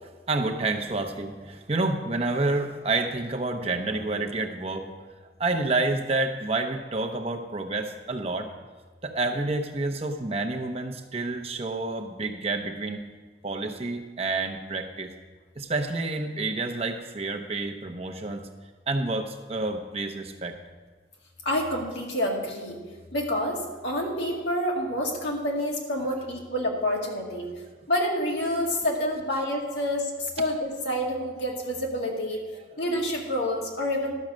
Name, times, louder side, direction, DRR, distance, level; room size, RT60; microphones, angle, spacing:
voice 1, 0.3-4.9 5.4-8.5 9.0-13.0 13.4-15.1 15.6-18.4 18.9-20.6, right 2 dB, 35° right, 4 dB, 0.8 m, -29 dB
voice 2, 21.5-22.8 23.1-27.5 27.9-32.4 32.8-34.1, left 1 dB, 80° left, -1 dB, 2.2 m, -28 dB
12.0 x 6.4 x 6.3 m, 1.4 s
head